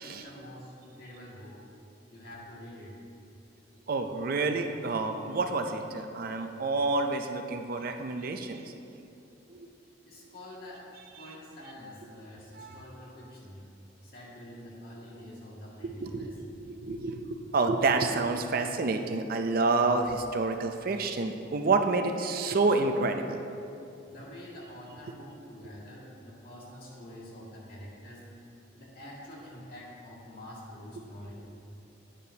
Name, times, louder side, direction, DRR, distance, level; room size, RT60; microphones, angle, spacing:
voice 1, 0.0-1.6 2.1-3.0 10.0-10.8 11.1-13.6 14.0-16.3 24.1-28.2 28.7-31.3, left 1 dB, 55° left, -5 dB, 2.1 m, -46 dB
voice 2, 3.9-8.7 9.5-9.7 11.1-11.3 12.2-12.3 12.5-12.9 15.8-16.3 16.6-23.4, right 3 dB, 50° right, 6 dB, 0.5 m, -29 dB
10.5 x 9.0 x 2.8 m, 2.7 s
head